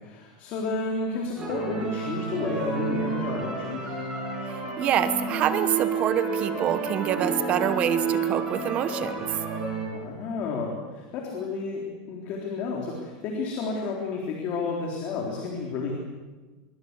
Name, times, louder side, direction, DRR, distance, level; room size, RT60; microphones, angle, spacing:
voice 1, 0.0-4.0 9.9-15.9, left 4 dB, 35° left, 0 dB, 3.7 m, -31 dB
sound 1, 1.4-9.9, right 4 dB, 15° right, 7.3 m, -30 dB
voice 2, 4.4-9.3, right 10 dB, 30° right, 11 dB, 1.2 m, -26 dB
25.0 x 23.0 x 8.2 m, 1.3 s
supercardioid pair, 170°, 4 cm